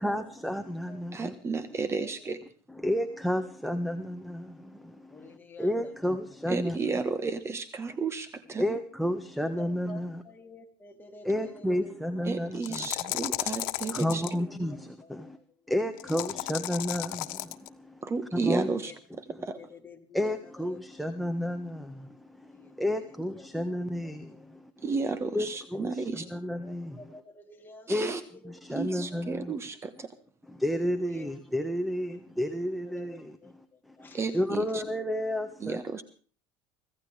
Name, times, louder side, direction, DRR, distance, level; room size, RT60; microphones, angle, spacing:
voice 1, 0.0-1.3 2.7-6.8 8.6-10.2 11.2-12.9 13.9-15.4 15.7-18.0 18.3-18.7 19.3-19.4 20.1-24.9 25.3-27.2 27.9-28.2 28.4-29.5 30.5-36.0, equal, ahead, 1.5 m, -32 dB
voice 2, 1.1-2.4 6.5-8.6 12.2-14.2 18.0-18.9 19.2-19.6 24.8-26.3 27.9-28.2 28.7-30.1 34.1-34.8 35.6-36.0, right 4 dB, 25° right, 1.4 m, -32 dB
voice 3, 2.0-2.3 3.4-3.5 5.1-5.7 6.1-6.2 9.6-11.9 13.5-14.8 15.0-15.3 18.6-18.9 19.5-20.4 20.7-20.8 22.5-23.5 24.3-24.4 26.2-28.2 28.4-28.5 28.9-29.3 31.0-31.3 32.1-32.2 32.8-34.2, left 3 dB, 15° left, 3.4 m, -50 dB
sound 1, 12.6-14.3 16.0-17.7, left 19 dB, 80° left, 1.4 m, -34 dB
25.5 x 16.5 x 3.5 m
cardioid pair, 135°, 12 cm